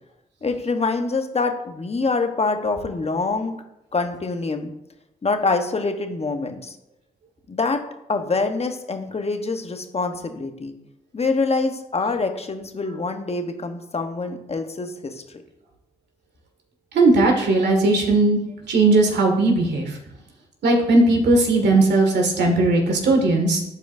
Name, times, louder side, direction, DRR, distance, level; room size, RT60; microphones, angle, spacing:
voice 1, 0.4-3.6 3.9-4.7 5.2-6.8 7.5-7.8 8.1-10.7 11.1-15.2, left 3 dB, 35° left, 5 dB, 1.1 m, -25 dB
voice 2, 16.9-18.4 18.7-20.0 20.6-23.6, right 2 dB, 70° right, 1 dB, 1.9 m, -18 dB
11.5 x 4.8 x 2.6 m, 0.86 s
supercardioid pair, 60°, 18 cm